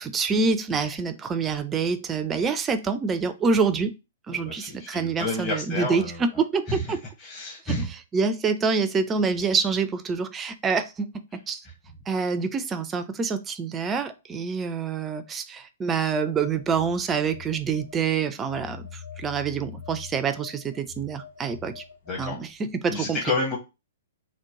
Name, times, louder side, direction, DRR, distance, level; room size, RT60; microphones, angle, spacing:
voice 1, 0.0-3.9 4.3-7.0 7.7-7.8 8.1-11.1 11.5-11.6 12.1-21.8 22.2-23.2, right 5 dB, 15° right, 0.4 m, -26 dB
voice 2, 4.3-6.2 6.7-7.9 11.6-11.7 22.1-22.4 22.9-23.6, left 2 dB, 25° left, 0.8 m, -30 dB
Telephone, 16.3-18.1 18.5-22.6, left 7 dB, 65° left, 1.3 m, -44 dB
3.0 x 2.1 x 3.5 m
figure-of-eight pair, 110°, 0 cm